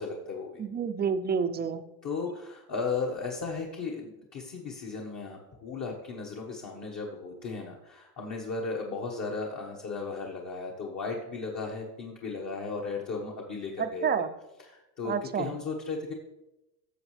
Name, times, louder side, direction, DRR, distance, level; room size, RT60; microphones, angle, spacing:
voice 1, 0.0-0.6 2.0-14.1 14.6-16.1, left 4 dB, 35° left, -1 dB, 1.4 m, -35 dB
voice 2, 0.6-1.8 13.8-14.3 15.0-15.5, right 6 dB, 20° right, 10 dB, 0.5 m, -29 dB
13.5 x 7.1 x 3.3 m, 0.98 s
supercardioid pair, 100°, 47 cm